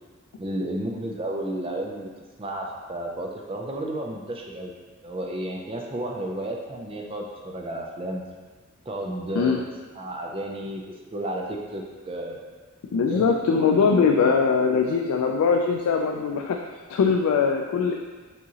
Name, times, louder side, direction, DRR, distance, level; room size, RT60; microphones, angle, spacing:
voice 1, 0.4-2.1 2.4-4.7 5.0-8.2 8.9-9.6 10.0-10.8 11.1-12.5 13.1-14.2, right 1 dB, 25° right, 0 dB, 0.4 m, -32 dB
voice 2, 12.9-17.9, left 5 dB, 85° left, 2 dB, 0.3 m, -22 dB
6.1 x 2.9 x 2.8 m, 1.4 s
head